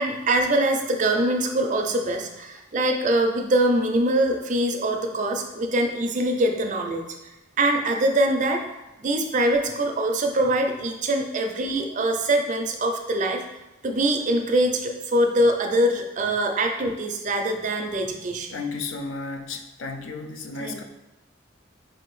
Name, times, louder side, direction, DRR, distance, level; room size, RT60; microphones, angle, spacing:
voice 1, 0.0-7.0 7.6-8.6 9.0-13.4 13.8-18.6 20.6-20.8, right 1 dB, 40° right, 4 dB, 0.4 m, -23 dB
voice 2, 18.5-20.8, left 4 dB, 80° left, 5 dB, 0.4 m, -33 dB
4.4 x 2.7 x 3.1 m, 1.0 s
head